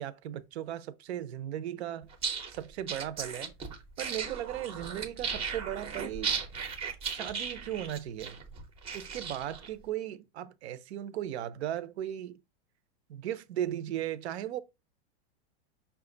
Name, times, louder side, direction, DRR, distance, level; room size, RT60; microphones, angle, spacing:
voice 1, 0.0-2.1 2.5-3.5 4.0-6.4 7.0-8.4 8.9-12.4 13.1-14.6, right 11 dB, 85° right, 0.7 m, -37 dB
sound 1, 2.1-9.7, right 6 dB, 20° right, 0.5 m, -36 dB
5.7 x 2.4 x 3.8 m
supercardioid pair, 160°, 32 cm